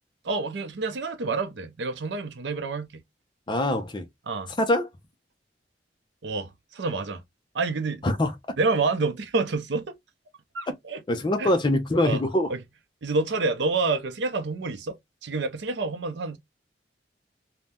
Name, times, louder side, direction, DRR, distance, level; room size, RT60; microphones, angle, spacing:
voice 1, 0.2-3.0 4.3-4.5 6.2-7.2 7.5-8.0 8.6-10.0 10.5-11.0 11.4-11.5 12.0-12.2 12.5-12.6 13.0-16.4, right 3 dB, 80° right, 0.6 m, -28 dB
voice 2, 3.5-4.1 4.6-4.9 8.0-8.3 11.1-12.5, left 1 dB, 25° left, 0.5 m, -23 dB
2.6 x 2.1 x 3.4 m
head